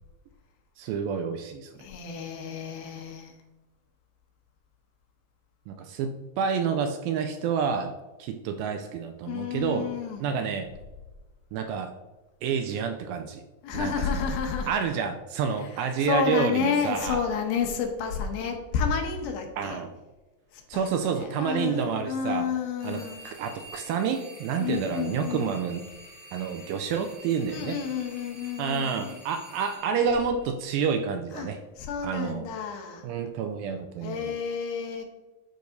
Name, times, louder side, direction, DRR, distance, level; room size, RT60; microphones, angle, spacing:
voice 1, 0.8-1.7 5.7-9.9 10.2-10.7 11.5-11.9 12.4-13.4 13.7-14.3 14.7-17.2 19.6-19.9 20.7-22.5 22.8-25.8 26.3-27.8 28.6-31.6 32.0-32.5 33.0-34.2, right 6 dB, 80° right, 6 dB, 2.1 m, -29 dB
voice 2, 1.8-3.3 9.3-10.3 13.6-14.7 15.6-19.8 20.5-23.2 24.6-25.6 27.5-29.2 31.3-31.5 31.8-33.1 34.0-35.0, left 6 dB, 80° left, 3 dB, 2.7 m, -30 dB
sound 1, 22.8-31.0, right 1 dB, 45° right, 0.8 m, -48 dB
11.5 x 4.7 x 2.6 m, 1.1 s
omnidirectional pair, 4.4 m